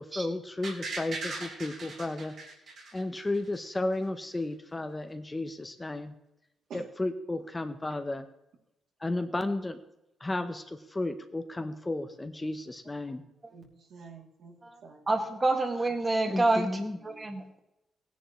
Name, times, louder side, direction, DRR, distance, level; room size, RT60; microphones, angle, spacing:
voice 1, 0.0-2.3 2.9-6.1 6.7-8.3 9.0-9.8 10.2-13.2 16.3-17.0, left 2 dB, 15° left, 8 dB, 0.8 m, -33 dB
sound 1, 0.6-3.6 3.9-4.0, right 3 dB, 60° right, 3.4 m, -39 dB
voice 2, 13.5-15.1 16.3-16.5 17.0-17.4, right 4 dB, 75° right, 0 dB, 2.7 m, -49 dB
voice 3, 15.1-17.6, right 2 dB, 20° right, 3 dB, 1.7 m, -28 dB
18.0 x 10.0 x 3.1 m, 0.87 s
cardioid pair, 140°, 0 cm